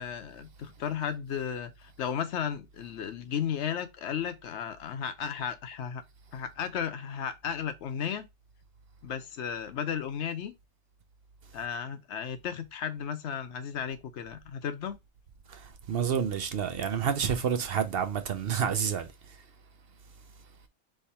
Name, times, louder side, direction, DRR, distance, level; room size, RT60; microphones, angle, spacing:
voice 1, 0.0-6.0 6.3-8.3 9.0-10.5 11.5-15.0, left 8 dB, 75° left, 1.0 m, -34 dB
voice 2, 15.5-19.4, right 7 dB, 60° right, 0.8 m, -29 dB
3.5 x 3.2 x 4.2 m
omnidirectional pair, 1.2 m